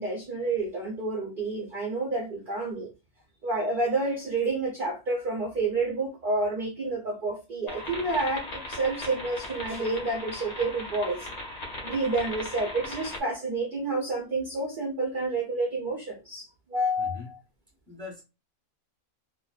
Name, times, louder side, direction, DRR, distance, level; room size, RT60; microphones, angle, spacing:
voice 1, 0.0-2.9 3.4-11.3 11.8-17.4, right 2 dB, 60° right, 0.5 m, -29 dB
sound 1, 7.7-13.2, left 1 dB, 50° left, 0.5 m, -38 dB
voice 2, 17.0-17.3 17.9-18.2, left 4 dB, 5° left, 0.8 m, -40 dB
2.5 x 2.1 x 2.3 m
omnidirectional pair, 1.6 m